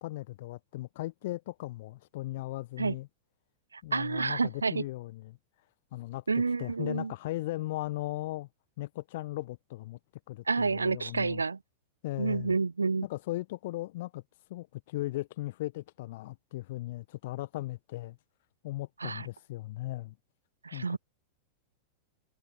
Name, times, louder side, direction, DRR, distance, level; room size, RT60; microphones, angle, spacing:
voice 1, 0.0-3.1 3.8-5.4 5.9-8.5 8.8-10.0 10.3-11.4 12.0-12.5 13.0-18.2 18.6-20.1 20.7-21.0, left 17 dB, 55° left, 1.3 m, -37 dB
voice 2, 3.7-4.8 6.3-7.1 10.5-11.6 12.2-13.1 19.0-19.3 20.6-21.0, right 4 dB, 75° right, 1.0 m, -29 dB
figure-of-eight pair, 90°, 0 cm